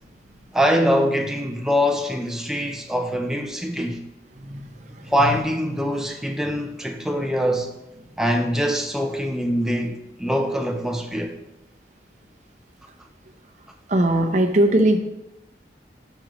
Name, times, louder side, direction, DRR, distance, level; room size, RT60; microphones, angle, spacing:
voice 1, 0.5-4.0 5.1-7.7 8.2-11.4, equal, 5° right, 0.5 m, -23 dB
voice 2, 4.4-4.7 5.0-5.4 13.9-15.0, right 1 dB, 40° right, 0.8 m, -20 dB
11.0 x 5.1 x 3.1 m
head